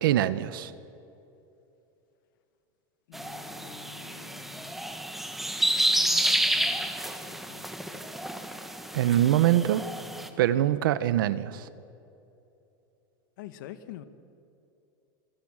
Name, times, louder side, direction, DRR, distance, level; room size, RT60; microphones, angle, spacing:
voice 1, 0.0-0.7 8.9-9.8 10.4-11.7, right 12 dB, 90° right, 15 dB, 1.2 m, -23 dB
voice 2, 3.1-4.8 6.0-8.1 9.1-9.2 10.0-10.5 13.4-14.0, left 11 dB, 70° left, 11 dB, 1.8 m, -48 dB
sound 1, 3.1-10.3, right 1 dB, ahead, 1.3 m, -30 dB
27.5 x 23.0 x 6.6 m, 2.8 s
supercardioid pair, 165°, 11 cm